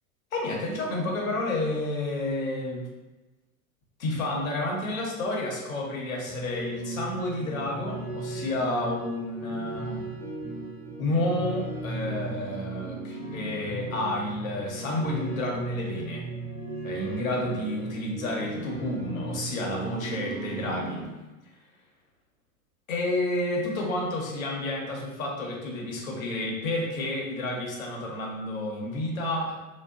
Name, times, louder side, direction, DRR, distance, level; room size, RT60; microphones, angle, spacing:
voice 1, 0.3-2.9 4.0-10.1 11.0-16.2 16.8-21.0 22.9-29.5, left 1 dB, 65° left, -1 dB, 0.8 m, -30 dB
sound 1, 6.3-21.1, right 2 dB, 10° right, 0.3 m, -36 dB
2.8 x 2.1 x 2.3 m, 1.1 s
figure-of-eight pair, 85°, 43 cm